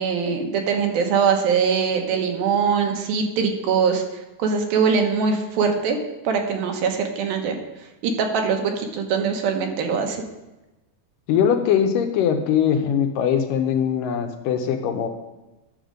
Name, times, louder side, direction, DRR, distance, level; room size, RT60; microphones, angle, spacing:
voice 1, 0.0-4.0 4.4-6.0 6.2-7.6 8.0-10.2, right 6 dB, 90° right, 4 dB, 2.9 m, -22 dB
voice 2, 11.3-15.1, left 8 dB, 80° left, 6 dB, 2.2 m, -21 dB
10.5 x 6.5 x 5.0 m, 1.0 s
omnidirectional pair, 4.1 m